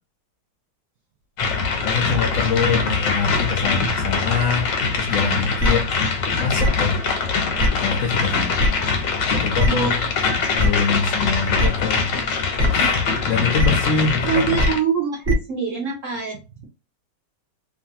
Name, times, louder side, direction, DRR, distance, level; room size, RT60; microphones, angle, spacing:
sound 1, 1.4-14.8, left 4 dB, 90° left, 1.3 m, -23 dB
voice 1, 1.8-4.7 5.0-5.9 6.4-7.0 7.7-8.6 9.3-10.0 10.5-12.1 12.7-12.9 13.3-14.6, left 5 dB, 70° left, 2 dB, 0.8 m, -24 dB
sound 2, 5.6-5.7 6.6-6.7 7.6-7.7 8.6-8.7 9.6-9.7 10.6-10.7 11.6-11.7 12.6-12.7 13.6-13.7 14.6-14.7 15.2-15.3, equal, 35° right, 1.1 m, -19 dB
voice 2, 9.6-10.0 14.2-16.6, right 7 dB, 65° right, 0 dB, 0.8 m, -24 dB
2.9 x 2.4 x 2.8 m, 0.30 s
omnidirectional pair, 1.9 m